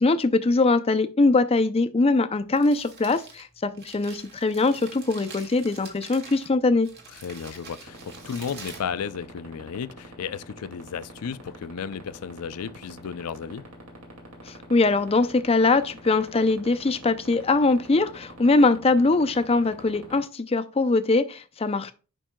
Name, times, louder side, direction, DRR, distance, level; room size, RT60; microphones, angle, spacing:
voice 1, 0.0-6.9 14.5-21.9, left 3 dB, 25° left, 0.5 m, -22 dB
Crumpling crinkling, 2.4-9.7, right 4 dB, 50° right, 1.8 m, -46 dB
voice 2, 7.2-13.7, left 7 dB, 80° left, 0.4 m, -34 dB
sound 1, 7.9-20.2, right 2 dB, 70° right, 2.2 m, -43 dB
10.0 x 5.4 x 2.2 m
head